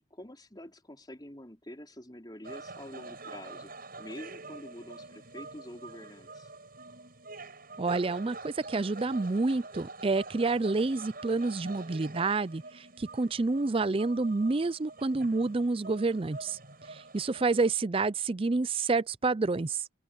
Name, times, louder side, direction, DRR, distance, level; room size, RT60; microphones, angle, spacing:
voice 1, 0.0-3.7 4.0-6.5, left 1 dB, 20° left, 5.0 m, -46 dB
sound 1, 2.4-17.7, right 3 dB, 45° right, 7.8 m, -46 dB
voice 2, 7.8-16.6 16.9-19.8, right 3 dB, 25° right, 0.5 m, -29 dB
open air
head